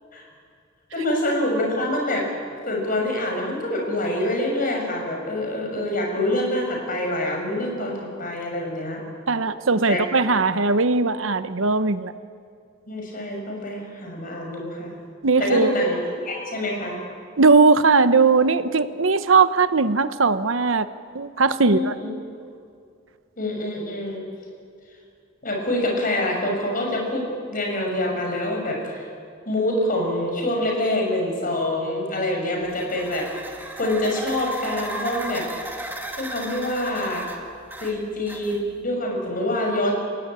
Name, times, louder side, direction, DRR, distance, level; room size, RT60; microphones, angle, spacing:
voice 1, 0.9-2.3 2.6-9.0 9.9-10.0 12.9-14.9 15.4-17.0 21.6-22.1 23.4-24.3 25.4-29.0 29.5-33.3 33.7-35.5 36.2-37.3 37.8-40.0, left 1 dB, 45° left, 1 dB, 6.1 m, -26 dB
voice 2, 9.3-12.1 15.2-15.8 17.4-20.9 21.1-21.9, right 4 dB, 75° right, 12 dB, 1.0 m, -19 dB
sound 1, 32.7-38.8, right 1 dB, 10° right, 2.2 m, -36 dB
30.0 x 17.0 x 8.9 m, 2.3 s
head